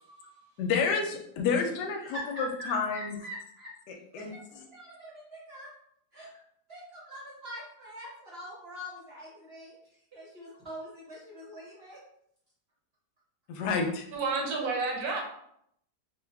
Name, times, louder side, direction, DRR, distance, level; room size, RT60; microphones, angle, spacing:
voice 1, 0.6-3.2 3.9-4.7 13.5-14.1, left 5 dB, 75° left, 3 dB, 1.1 m, -30 dB
voice 2, 1.9-3.7 4.1-5.7 6.1-6.3 6.7-12.0, equal, 45° right, -6 dB, 0.9 m, -44 dB
voice 3, 14.1-15.2, right 4 dB, 65° right, 0 dB, 1.2 m, -30 dB
3.3 x 2.3 x 3.3 m, 0.72 s
omnidirectional pair, 2.0 m